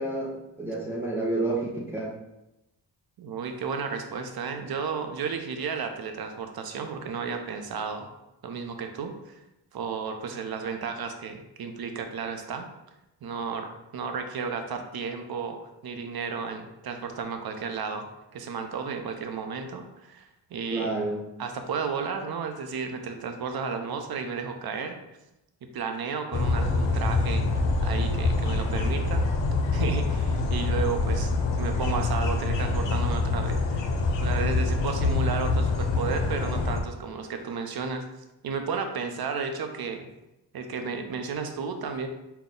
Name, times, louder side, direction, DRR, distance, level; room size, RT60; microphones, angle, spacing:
voice 1, 0.0-2.2 20.7-21.2, right 2 dB, 5° right, -4 dB, 0.6 m, -30 dB
voice 2, 3.2-8.1 8.4-9.4 9.7-12.7 13.2-15.6 15.8-18.1 18.3-20.9 21.4-25.0 25.7-27.4 27.8-29.2 29.7-33.8 34.2-38.0 38.4-40.1 40.5-42.1, right 5 dB, 50° right, 6 dB, 0.7 m, -33 dB
sound 1, 26.3-36.8, left 3 dB, 70° left, 0.6 m, -25 dB
4.0 x 2.2 x 3.7 m, 0.92 s
cardioid pair, 60°, 46 cm